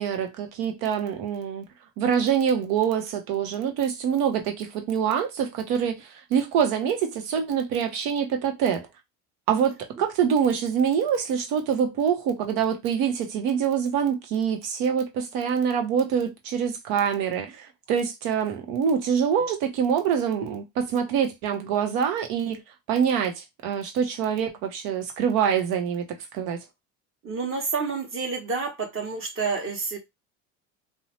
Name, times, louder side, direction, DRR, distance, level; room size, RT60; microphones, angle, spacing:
voice 1, 0.0-1.7 2.0-8.9 9.5-22.6 22.9-26.6, right 7 dB, 75° right, 0.9 m, -25 dB
voice 2, 27.2-30.0, right 4 dB, 40° right, 1.2 m, -29 dB
2.7 x 2.1 x 3.0 m
supercardioid pair, 85°, 34 cm